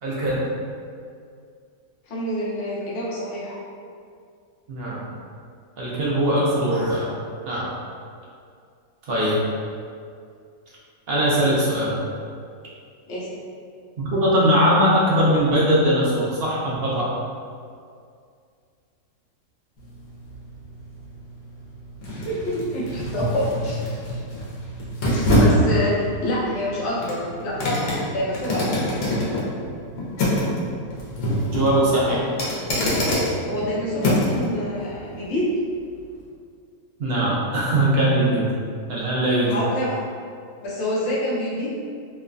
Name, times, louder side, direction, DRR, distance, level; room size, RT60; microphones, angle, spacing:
voice 1, 0.0-0.5 4.7-5.0 5.8-7.1 7.5-7.7 9.1-9.4 11.1-12.0 14.0-17.1 31.5-32.2 37.0-38.5 38.9-39.6, equal, 60° right, -6 dB, 0.7 m, -20 dB
voice 2, 2.1-3.6 13.1-13.3 22.1-23.8 25.1-25.9 26.2-28.8 31.9-32.2 33.4-35.4 39.5-40.0 40.6-41.8, equal, 60° left, -7 dB, 0.9 m, -27 dB
sound 1, 19.8-34.5 34.9-35.0, equal, 85° left, 1.1 m, -25 dB
3.0 x 2.1 x 2.4 m, 2.3 s
omnidirectional pair, 1.5 m